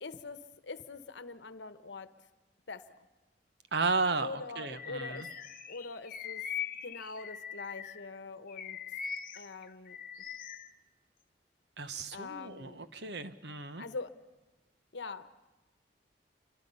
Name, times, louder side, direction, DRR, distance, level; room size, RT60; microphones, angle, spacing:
voice 1, 0.0-2.1 2.7-2.9 4.2-5.3 5.7-6.5 6.8-8.8 9.3-10.0 12.1-12.8 13.8-14.1 14.9-15.3, left 4 dB, 85° left, 12 dB, 1.0 m, -43 dB
voice 2, 3.7-5.3 11.8-13.8, right 3 dB, 65° right, 11 dB, 1.1 m, -34 dB
Bird vocalization bird call bird song, 4.7-8.1 8.5-10.7, left 8 dB, 50° left, 0.8 m, -41 dB
28.5 x 24.0 x 5.6 m, 1.1 s
head